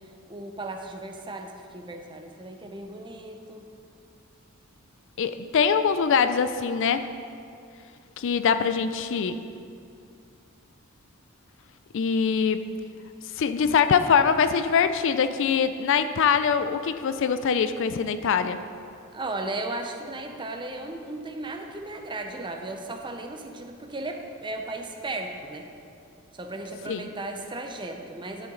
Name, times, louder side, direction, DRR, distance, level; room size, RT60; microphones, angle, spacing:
voice 1, 0.3-3.6 19.1-25.7 26.3-28.5, right 2 dB, 20° right, 4 dB, 0.7 m, -36 dB
voice 2, 5.2-7.1 8.2-9.4 11.9-12.6 13.4-18.6 26.9-27.1, left 6 dB, 60° left, 11 dB, 0.4 m, -23 dB
11.0 x 6.9 x 3.8 m, 2.4 s
head